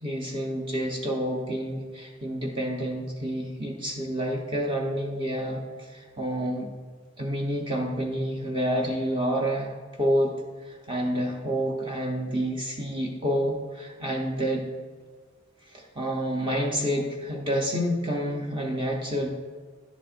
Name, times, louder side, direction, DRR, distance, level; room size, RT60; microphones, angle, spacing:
voice 1, 0.0-6.7 7.2-9.7 10.0-10.3 10.6-14.6 15.7-19.3, equal, 25° right, -1 dB, 0.8 m, -28 dB
10.5 x 7.3 x 2.5 m, 1.5 s
head